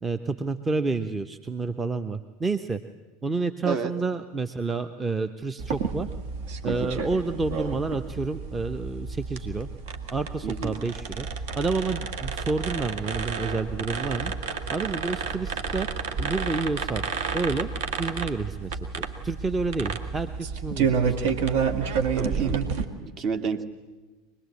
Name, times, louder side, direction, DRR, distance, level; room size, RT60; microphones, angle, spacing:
voice 1, 0.0-2.8 3.2-6.1 6.6-9.7 10.1-11.3 11.6-14.3 14.7-15.9 16.2-17.0 17.3-17.7 18.0-21.2, right 4 dB, 15° right, 10 dB, 1.0 m, -29 dB
sound 1, 5.6-22.8, right 5 dB, 60° right, 2.0 m, -30 dB
voice 2, 10.4-10.8 22.2-22.6 23.0-23.7, right 5 dB, 35° right, 7 dB, 2.1 m, -30 dB
24.5 x 20.5 x 8.5 m, 1.3 s
figure-of-eight pair, 80°, 0 cm